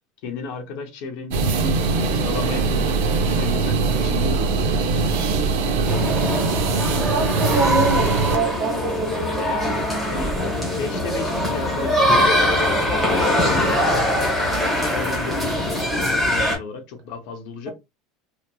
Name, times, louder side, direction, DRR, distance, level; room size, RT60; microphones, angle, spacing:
voice 1, 0.2-5.3 10.1-17.7, left 4 dB, 60° left, 0.7 m, -34 dB
sound 1, 1.3-8.4, right 4 dB, 90° right, 0.6 m, -21 dB
sound 2, 5.9-16.6, equal, ahead, 1.0 m, -22 dB
voice 2, 7.1-9.8, right 3 dB, 60° right, 1.4 m, -26 dB
2.9 x 2.4 x 2.2 m
cardioid pair, 170°, 0 cm